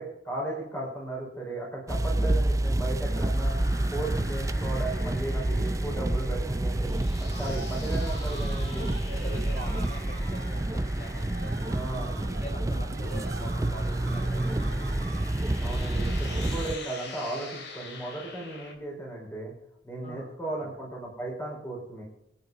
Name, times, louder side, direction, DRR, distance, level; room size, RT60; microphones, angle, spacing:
voice 1, 0.0-3.5 3.9-6.9 7.2-8.9 11.7-12.2 15.6-19.5 19.8-22.0, right 2 dB, 15° left, -2 dB, 4.8 m, -36 dB
sound 1, 1.9-16.8, right 1 dB, 15° right, 0.4 m, -28 dB
sound 2, 3.0-18.7, left 3 dB, 65° left, 3.5 m, -46 dB
sound 3, 7.3-15.5, right 3 dB, 60° right, 2.0 m, -45 dB
voice 2, 9.0-14.8 20.0-20.3 20.6-20.7, equal, 40° left, 1 dB, 5.1 m, -44 dB
25.0 x 8.8 x 4.0 m, 0.82 s
head